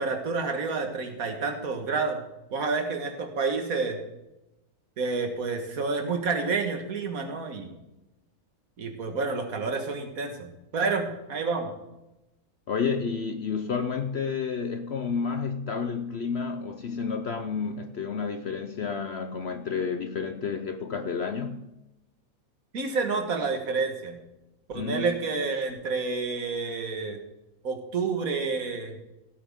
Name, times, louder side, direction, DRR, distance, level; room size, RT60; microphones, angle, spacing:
voice 1, 0.0-2.2 2.5-4.0 5.0-7.7 8.8-11.7 22.7-24.2 24.7-27.2 27.6-28.9, right 4 dB, 70° right, 2.0 m, -29 dB
voice 2, 12.7-21.6 24.7-25.1, left 5 dB, 55° left, 0.8 m, -30 dB
16.5 x 8.7 x 3.6 m
omnidirectional pair, 1.6 m